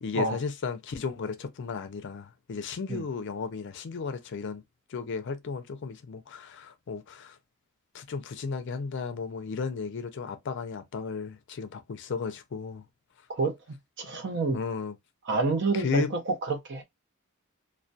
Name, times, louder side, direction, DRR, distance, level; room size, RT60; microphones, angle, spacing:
voice 1, 0.0-4.6 4.9-7.4 7.9-12.8 14.5-14.9 15.7-16.1, left 5 dB, 55° left, 0.4 m, -34 dB
voice 2, 13.3-14.6 15.3-16.8, right 3 dB, 55° right, 0.6 m, -29 dB
2.2 x 2.1 x 2.6 m
head